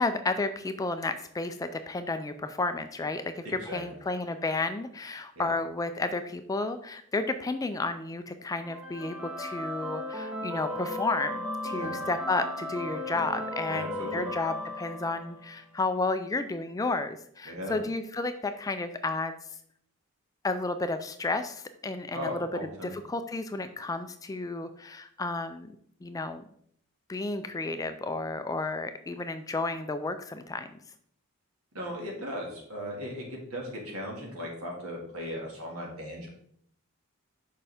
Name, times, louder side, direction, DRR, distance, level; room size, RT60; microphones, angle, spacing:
voice 1, 0.0-19.4 20.4-22.5 22.8-25.8 26.0-26.4 27.1-30.7, left 3 dB, 15° left, 9 dB, 0.3 m, -32 dB
sound 1, 8.6-15.6, left 1 dB, 5° right, 1.4 m, -36 dB
voice 2, 11.7-12.0 13.7-14.3 17.5-17.8 22.1-23.0 31.7-36.3, equal, 70° right, -1 dB, 2.0 m, -37 dB
6.7 x 5.4 x 3.5 m, 0.66 s
head